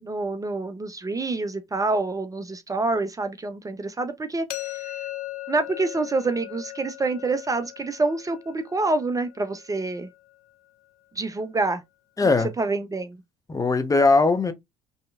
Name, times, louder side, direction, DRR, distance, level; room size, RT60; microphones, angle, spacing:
voice 1, 0.0-4.8 5.5-10.1 11.1-11.8 12.6-13.2, right 3 dB, 20° right, 0.7 m, -27 dB
sound 1, 4.5-10.3, left 16 dB, 60° left, 0.8 m, -38 dB
voice 2, 12.2-12.5 13.5-14.5, left 3 dB, 20° left, 0.9 m, -19 dB
5.6 x 3.0 x 2.4 m
hypercardioid pair, 65°, 16 cm